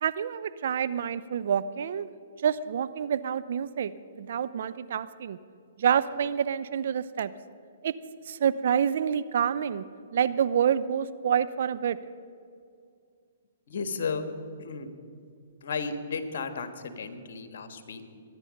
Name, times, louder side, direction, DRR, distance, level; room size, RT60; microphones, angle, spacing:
voice 1, 0.0-2.1 2.4-3.9 4.2-5.4 5.8-7.3 7.8-7.9 8.3-9.8 10.1-12.0, right 8 dB, 60° right, 13 dB, 0.6 m, -27 dB
voice 2, 13.7-14.2 14.6-14.9 15.6-18.0, left 5 dB, 60° left, 9 dB, 1.5 m, -34 dB
23.5 x 9.9 x 5.3 m, 2.3 s
hypercardioid pair, 125°, 0 cm